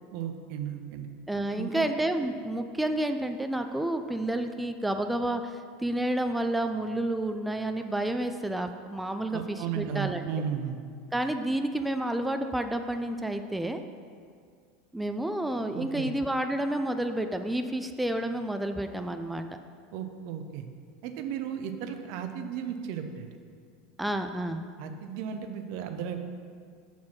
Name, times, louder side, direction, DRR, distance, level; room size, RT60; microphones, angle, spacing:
voice 1, 0.1-1.1 1.6-1.9 9.3-10.8 15.7-16.1 19.9-20.6 21.0-23.3 24.8-26.2, right 8 dB, 60° right, 7 dB, 0.6 m, -35 dB
voice 2, 1.3-10.2 11.1-13.8 14.9-19.5 24.0-24.7, right 1 dB, 5° right, 7 dB, 0.4 m, -30 dB
5.8 x 4.3 x 5.8 m, 2.1 s
hypercardioid pair, 85°, 0 cm